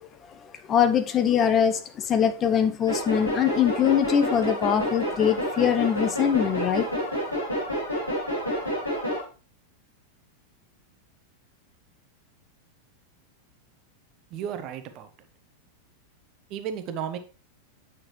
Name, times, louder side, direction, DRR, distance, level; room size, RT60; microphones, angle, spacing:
voice 1, 0.7-6.9, left 9 dB, 30° left, 9 dB, 0.9 m, -22 dB
sound 1, 2.9-9.2, equal, 80° left, 4.4 m, -29 dB
voice 2, 14.3-15.1 16.5-17.2, right 8 dB, 40° right, 9 dB, 0.9 m, -33 dB
8.9 x 6.0 x 3.2 m, 0.36 s
figure-of-eight pair, 90°, 0 cm